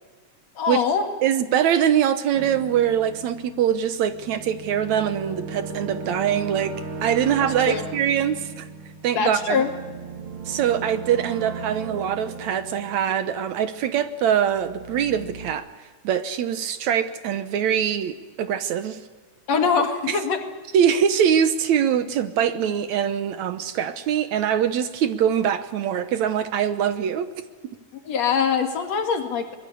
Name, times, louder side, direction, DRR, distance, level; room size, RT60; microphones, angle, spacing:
voice 1, 0.6-1.1 7.4-7.9 9.1-9.7 19.5-20.4 28.0-29.6, left 6 dB, 60° left, 5 dB, 3.0 m, -23 dB
voice 2, 1.2-6.7 7.0-8.7 9.0-9.6 10.5-15.7 16.0-19.0 20.1-20.2 20.7-27.3, right 9 dB, 70° right, 11 dB, 2.2 m, -23 dB
sound 1, 2.3-14.0 14.4-15.5, right 4 dB, 45° right, 2.3 m, -37 dB
23.5 x 22.0 x 8.5 m, 1.4 s
omnidirectional pair, 3.6 m